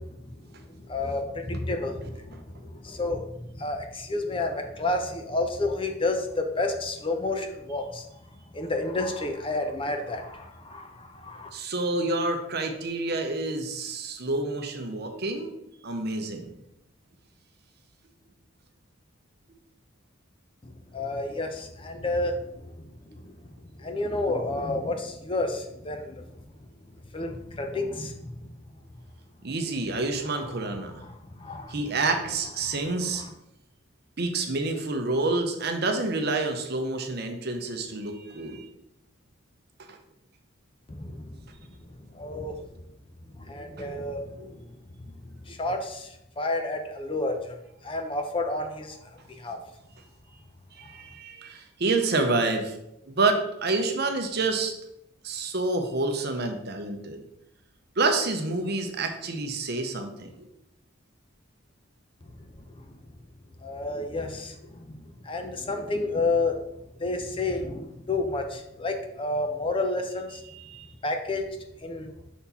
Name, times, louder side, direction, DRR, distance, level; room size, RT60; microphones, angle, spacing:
voice 1, 0.7-3.2 3.5-8.1 8.5-11.5 20.6-22.4 22.6-23.3 23.8-26.2 27.1-28.5 31.2-31.8 32.7-32.8 40.9-41.3 42.1-42.6 43.4-44.6 45.5-47.5 47.8-49.0 49.4-49.6 63.6-65.0 65.2-66.6 67.0-70.4 71.0-71.4 71.8-72.1, left 2 dB, 25° left, 5 dB, 0.6 m, -30 dB
voice 2, 11.5-15.5 15.8-16.5 29.4-30.9 31.7-33.2 34.2-38.7 39.9-40.0 43.8-43.9 50.7-52.8 53.1-54.7 55.2-57.2 58.0-60.5 70.5-70.9, right 3 dB, 50° right, 5 dB, 0.8 m, -28 dB
5.5 x 4.3 x 4.2 m, 0.84 s
head